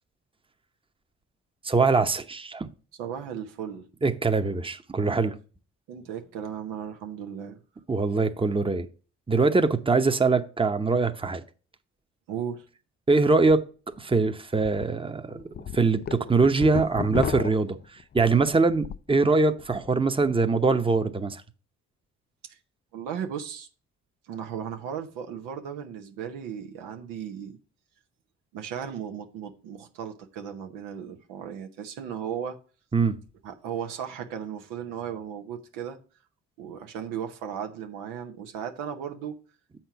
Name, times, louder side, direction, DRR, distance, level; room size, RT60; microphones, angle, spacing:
voice 1, 1.6-2.7 4.0-5.4 7.9-8.9 9.3-11.4 13.1-13.6 14.0-17.8 18.1-21.4 32.9-33.2, right 3 dB, 15° right, 0.9 m, -23 dB
voice 2, 3.0-3.9 5.9-7.6 12.3-12.6 22.5-22.6 22.9-23.7 24.3-27.6 28.5-32.6 33.4-36.0 36.6-39.3, right 8 dB, 85° right, 1.0 m, -36 dB
sound 1, 13.5-13.6 14.0-14.1 14.6-14.9 15.3-19.1 19.5-19.9, left 9 dB, 35° left, 0.4 m, -34 dB
7.5 x 4.5 x 5.7 m
hypercardioid pair, 50°, 32 cm